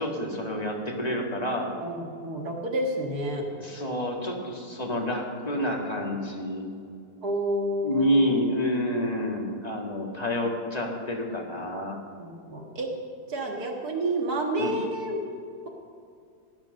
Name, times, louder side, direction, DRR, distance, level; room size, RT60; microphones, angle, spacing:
voice 1, 0.0-1.7 3.6-6.7 7.8-12.0 14.6-14.7, equal, 25° left, 0 dB, 2.0 m, -28 dB
voice 2, 1.8-3.4 7.2-8.3 12.2-12.9 13.3-15.2, right 1 dB, 70° right, 1 dB, 2.2 m, -29 dB
16.5 x 10.5 x 6.5 m, 2.3 s
omnidirectional pair, 1.7 m